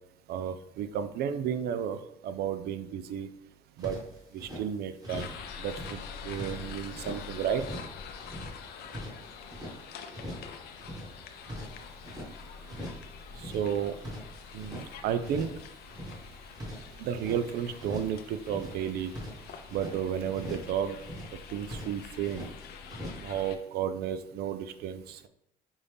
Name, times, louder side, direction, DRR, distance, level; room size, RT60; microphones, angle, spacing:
voice 1, 0.3-3.3 3.8-4.0 4.3-5.3 5.6-7.6 13.4-14.0 14.5-15.5 17.0-19.1 19.7-21.0 21.5-22.5 23.2-25.3, right 8 dB, 70° right, 11 dB, 0.4 m, -32 dB
sound 1, 3.8-4.6 5.0-5.4 5.7-7.2 7.6-9.8 10.1-10.5 10.8-12.3 12.7-13.1 13.3-14.9 15.2-15.6 15.9-17.4 17.8-18.2 18.4-20.0 20.3-20.7 21.0-21.4 21.6-22.5 22.9-23.3, equal, 20° right, 1.4 m, -42 dB
sound 2, 5.1-23.6, left 6 dB, 70° left, 0.5 m, -46 dB
5.3 x 2.6 x 3.4 m, 0.81 s
cardioid pair, 110°, 17 cm